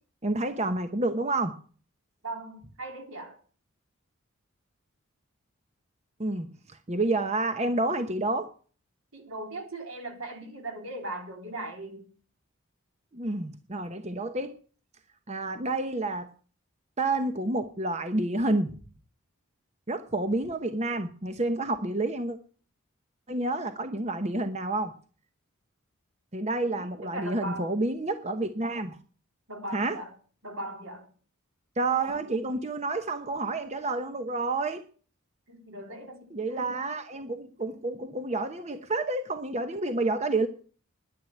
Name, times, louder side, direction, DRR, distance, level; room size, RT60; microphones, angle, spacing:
voice 1, 0.2-1.6 6.2-8.5 13.1-14.5 15.3-16.3 17.0-18.7 19.9-22.4 23.3-24.9 26.3-29.0 29.7-30.0 31.8-34.8 36.3-40.5, right 2 dB, 30° right, 0.9 m, -29 dB
voice 2, 2.2-3.4 9.1-12.1 26.8-27.8 29.5-30.1 30.4-31.1 35.5-36.8, right 1 dB, 75° right, 3.7 m, -39 dB
10.5 x 10.5 x 9.2 m
head